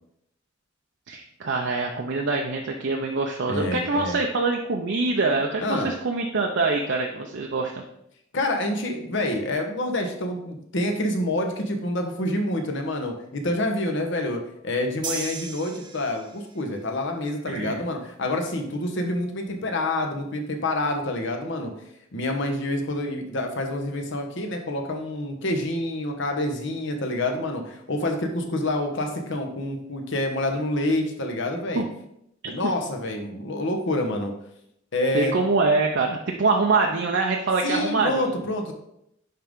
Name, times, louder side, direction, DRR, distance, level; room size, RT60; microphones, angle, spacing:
voice 1, 1.1-7.8 17.5-17.8 31.7-31.9 32.4-32.7 35.1-38.4, right 3 dB, 60° right, 1 dB, 0.6 m, -24 dB
voice 2, 3.5-4.2 5.6-5.9 8.3-21.7 22.1-31.8 32.4-34.3 34.9-35.3 37.6-38.7, left 1 dB, 65° left, 3 dB, 1.1 m, -27 dB
sound 1, 15.0-16.6, right 5 dB, 25° right, 0.9 m, -35 dB
10.0 x 3.8 x 3.6 m, 0.76 s
head